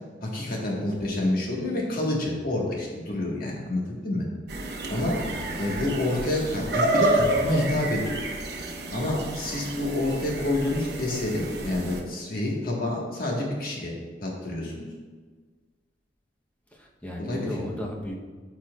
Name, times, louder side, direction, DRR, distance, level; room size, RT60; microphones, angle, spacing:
voice 1, 0.2-4.3 4.9-5.2 5.6-8.2 8.9-13.9 14.2-14.9 17.2-17.5, left 1 dB, 55° left, -2 dB, 1.5 m, -28 dB
sound 1, 4.5-12.0, right 1 dB, 65° right, 0.9 m, -29 dB
voice 2, 5.3-5.6 16.7-18.1, left 1 dB, 10° left, -2 dB, 0.9 m, -35 dB
13.0 x 4.4 x 2.4 m, 1.5 s
head